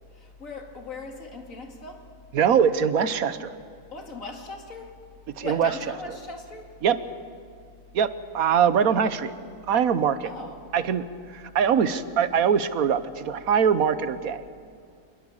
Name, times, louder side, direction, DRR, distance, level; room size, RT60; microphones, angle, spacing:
voice 1, 0.1-2.0 3.9-4.9 5.4-6.7 10.2-10.6, left 2 dB, 70° left, 3 dB, 2.9 m, -39 dB
voice 2, 2.3-3.5 5.4-5.7 6.8-7.0 7.9-9.3 9.7-10.3 10.7-11.0 11.3-14.5, right 7 dB, 90° right, 13 dB, 1.4 m, -22 dB
26.5 x 21.5 x 7.2 m, 2.2 s
omnidirectional pair, 1.5 m